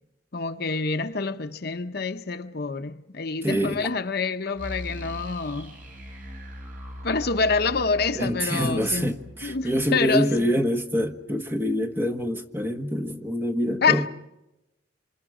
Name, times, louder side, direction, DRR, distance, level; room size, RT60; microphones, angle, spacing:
voice 1, 0.3-5.8 7.0-9.1 9.4-10.5 13.8-14.1, left 4 dB, 60° left, 0.9 m, -26 dB
voice 2, 3.4-3.9 8.1-14.1, equal, 10° right, 1.5 m, -26 dB
sound 1, 4.5-11.4, equal, 50° right, 4.7 m, -41 dB
28.0 x 26.0 x 5.0 m
head